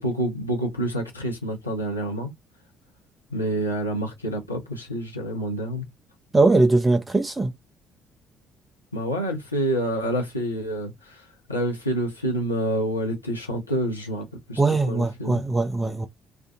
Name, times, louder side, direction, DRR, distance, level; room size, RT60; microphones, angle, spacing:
voice 1, 0.0-2.3 3.3-5.8 8.9-14.6 14.9-15.4, right 1 dB, 85° left, 0.7 m, -28 dB
voice 2, 6.3-7.5 14.6-16.1, right 3 dB, 20° right, 0.4 m, -20 dB
2.5 x 2.4 x 2.3 m
figure-of-eight pair, 50°, 0 cm